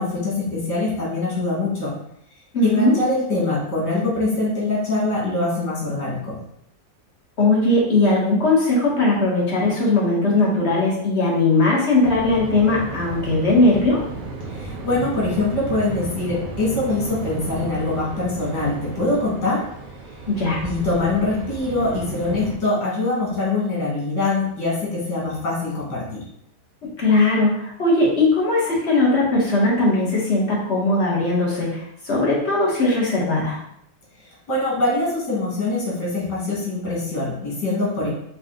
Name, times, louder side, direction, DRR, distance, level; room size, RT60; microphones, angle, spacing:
voice 1, 0.0-1.9 2.6-6.4 14.5-19.6 20.6-26.2 34.5-38.1, left 2 dB, 80° left, -5 dB, 2.4 m, -23 dB
voice 2, 2.5-3.0 7.4-14.0 20.3-20.6 27.0-33.6, left 2 dB, 40° left, -5 dB, 1.7 m, -19 dB
sound 1, 12.0-22.6, right 3 dB, 60° right, 0.5 m, -33 dB
5.6 x 2.5 x 3.7 m, 0.72 s
omnidirectional pair, 1.8 m